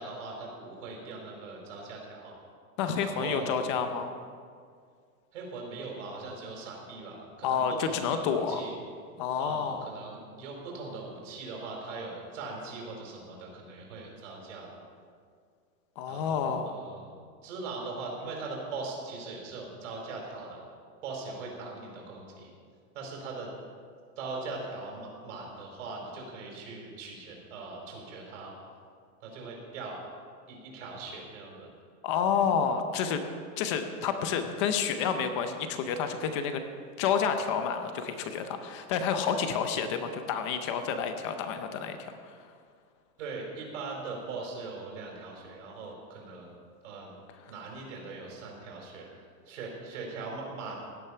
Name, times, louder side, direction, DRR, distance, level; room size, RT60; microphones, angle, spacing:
voice 1, 0.0-2.3 3.0-3.8 5.3-8.8 9.4-14.7 16.1-17.1 17.4-20.6 21.0-22.5 22.9-23.5 24.2-28.5 29.2-30.0 30.5-31.7 43.2-46.5 46.8-47.2 47.5-50.8, right 3 dB, 55° right, -1 dB, 4.4 m, -40 dB
voice 2, 2.8-4.1 7.4-8.7 9.2-9.8 16.0-16.8 32.0-33.2 33.6-36.6 37.0-42.4, left 7 dB, 20° left, 7 dB, 0.6 m, -29 dB
16.5 x 10.5 x 5.7 m, 2.1 s
supercardioid pair, 175°, 44 cm